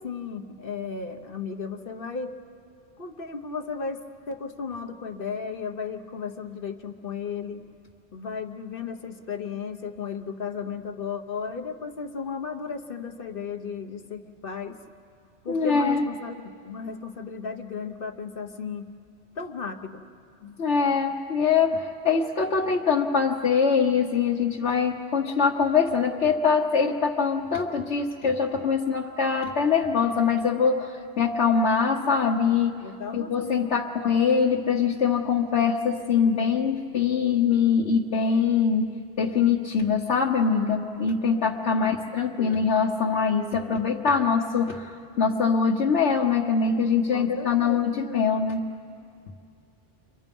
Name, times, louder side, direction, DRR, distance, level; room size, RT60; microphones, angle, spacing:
voice 1, 0.0-2.3 3.0-7.6 8.1-14.7 15.4-18.9 19.4-20.0 32.8-33.7 41.6-41.9 42.4-42.6 47.1-47.9, left 5 dB, 50° left, 5 dB, 1.2 m, -35 dB
voice 2, 15.5-16.0 20.4-32.8 33.1-44.9 45.2-48.6, left 6 dB, 75° left, -2 dB, 1.4 m, -23 dB
30.0 x 24.5 x 5.4 m, 2.4 s
omnidirectional pair, 1.2 m